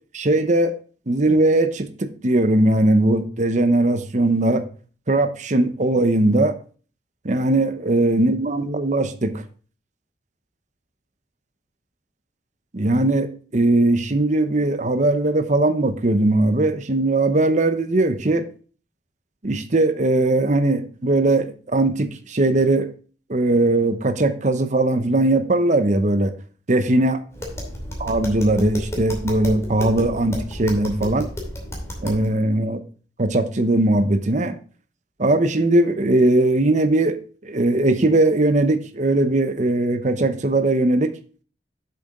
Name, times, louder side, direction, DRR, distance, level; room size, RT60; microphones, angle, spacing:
voice 1, 0.1-0.7 1.1-4.6 5.1-6.6 7.2-9.4 12.7-18.5 19.4-22.9 23.3-26.3 26.7-27.2 28.0-31.3 32.0-32.8 33.2-34.6 35.2-37.2 37.4-41.1, right 2 dB, 45° right, 9 dB, 0.8 m, -19 dB
Tap, 27.3-32.3, equal, 15° left, 2.7 m, -32 dB
8.2 x 6.9 x 3.7 m, 0.40 s
head